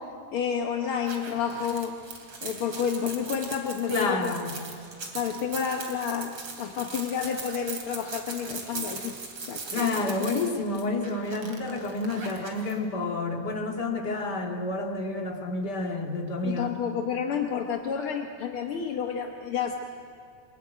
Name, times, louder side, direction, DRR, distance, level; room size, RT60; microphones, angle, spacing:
voice 1, 0.0-2.0 2.4-4.4 5.1-10.1 16.4-19.8, left 7 dB, 60° left, 3 dB, 1.5 m, -30 dB
sound 1, 1.0-12.7, right 4 dB, 45° right, 3.6 m, -39 dB
voice 2, 3.9-4.6 9.7-16.7, left 2 dB, 35° left, 2 dB, 2.4 m, -29 dB
25.0 x 21.5 x 9.3 m, 2.4 s
omnidirectional pair, 3.7 m